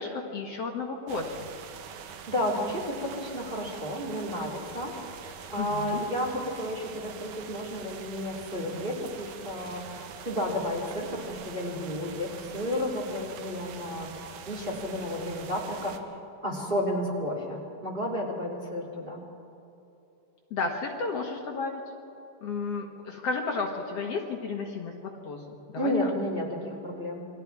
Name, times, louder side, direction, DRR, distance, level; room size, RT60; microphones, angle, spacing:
voice 1, 0.0-1.5 5.6-6.0 20.5-21.8 22.4-25.9, left 4 dB, 60° left, 1 dB, 2.4 m, -33 dB
sound 1, 1.1-16.0, right 7 dB, 75° right, 2.4 m, -44 dB
voice 2, 2.0-14.1 14.5-15.9 16.4-19.2 25.7-27.3, left 1 dB, 15° right, -2 dB, 2.9 m, -32 dB
28.0 x 22.0 x 4.7 m, 2.9 s
omnidirectional pair, 3.5 m